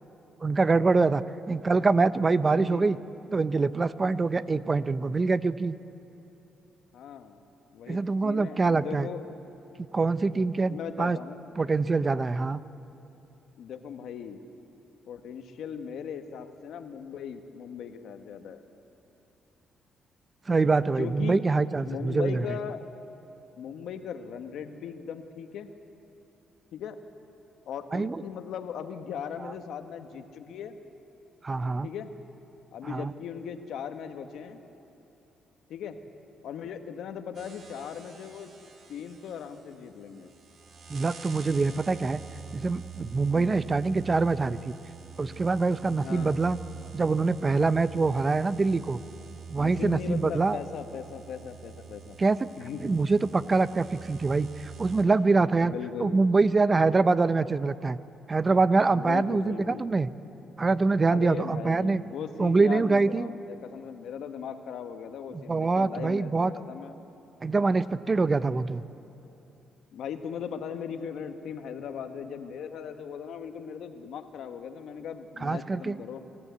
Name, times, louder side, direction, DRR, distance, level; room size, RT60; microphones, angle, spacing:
voice 1, 0.4-3.0 3.3-5.8 7.9-9.1 9.9-11.2 11.6-12.6 20.5-22.5 27.9-28.2 31.4-31.9 32.8-33.1 40.9-42.2 42.5-44.7 45.2-46.6 46.9-49.0 49.5-50.6 52.2-52.5 52.8-55.7 56.0-58.0 58.3-60.1 60.6-62.0 62.4-63.3 65.3-66.5 67.4-68.8 75.4-76.0, right 3 dB, 30° right, 15 dB, 0.5 m, -24 dB
voice 2, 2.5-3.0 6.9-7.4 7.7-9.2 10.7-11.4 13.6-14.4 15.1-18.6 21.0-21.4 21.8-22.8 23.6-25.7 26.7-27.0 27.7-30.8 31.8-32.1 32.7-34.6 35.7-36.0 36.4-38.5 38.9-40.3 43.3-43.6 46.0-46.4 49.6-52.2 52.6-53.0 55.6-56.2 58.9-59.9 61.1-67.0 69.9-76.2, left 7 dB, 75° left, 7 dB, 1.2 m, -38 dB
sound 1, 37.3-55.0, right 6 dB, 55° right, 3.0 m, -46 dB
24.5 x 14.0 x 8.1 m, 2.9 s
cardioid pair, 90°, 0 cm